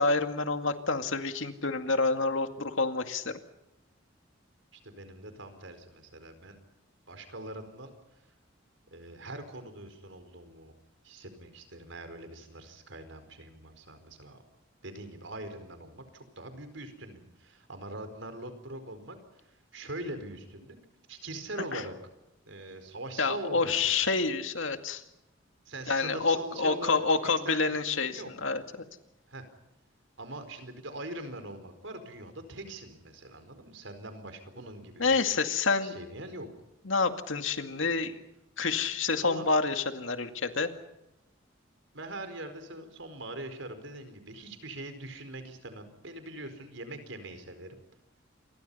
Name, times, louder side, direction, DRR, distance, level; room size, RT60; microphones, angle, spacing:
voice 1, 0.0-3.3 21.7-21.8 23.2-25.0 25.9-28.6 35.0-36.0 36.9-38.2 38.6-40.7, left 4 dB, 80° left, 7 dB, 2.2 m, -28 dB
voice 2, 4.7-6.6 7.1-7.9 8.9-10.7 11.0-14.4 14.8-19.2 19.7-20.8 21.1-21.9 22.5-23.7 24.0-24.1 25.7-27.0 27.2-28.3 29.3-29.4 30.2-35.2 35.8-36.5 39.2-39.5 41.9-47.8, right 1 dB, 70° right, 9 dB, 4.6 m, -42 dB
28.0 x 23.0 x 5.6 m, 0.91 s
head